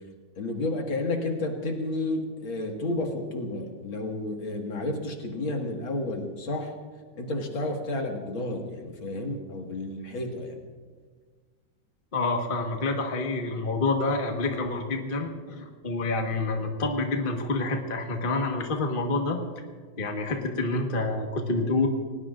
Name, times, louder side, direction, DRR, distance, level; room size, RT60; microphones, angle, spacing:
voice 1, 0.4-6.7 7.2-10.6, left 2 dB, 75° left, 2 dB, 2.7 m, -31 dB
voice 2, 12.1-19.4 20.0-21.9, left 3 dB, 30° left, 2 dB, 1.4 m, -28 dB
29.0 x 18.5 x 2.5 m, 1.5 s
omnidirectional pair, 2.2 m